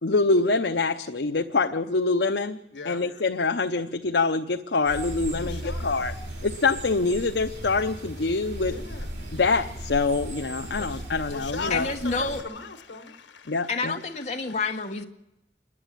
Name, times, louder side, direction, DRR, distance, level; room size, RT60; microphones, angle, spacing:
voice 1, 0.0-2.6 2.8-6.1 6.4-8.7 9.3-11.9 13.5-14.0, left 3 dB, 70° left, 6 dB, 0.7 m, -25 dB
voice 2, 2.7-3.0 5.3-6.0 8.6-9.1 10.5-11.0 11.3-13.7 14.3-14.6, left 4 dB, 85° left, 9 dB, 1.6 m, -39 dB
sound 1, 4.9-12.4, right 1 dB, 80° right, 4.5 m, -37 dB
voice 3, 11.7-12.4 13.7-15.0, left 4 dB, 40° left, 2 dB, 1.5 m, -28 dB
28.0 x 11.0 x 9.0 m, 0.88 s
head